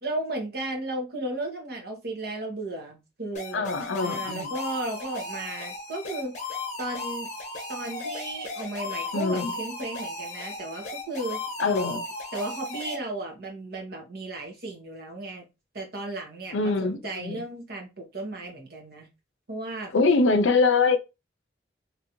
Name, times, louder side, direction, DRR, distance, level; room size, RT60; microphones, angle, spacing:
voice 1, 0.0-3.7 4.0-6.3 6.8-7.3 7.7-11.4 12.3-15.5 15.7-19.1 19.5-19.9, right 2 dB, 55° right, 1.1 m, -34 dB
sound 1, 3.3-13.0, left 3 dB, 40° left, 0.8 m, -36 dB
voice 2, 3.5-4.5 9.1-9.5 11.6-12.1 16.5-17.4 19.9-21.0, left 3 dB, 85° left, 0.4 m, -23 dB
2.9 x 2.6 x 2.9 m
head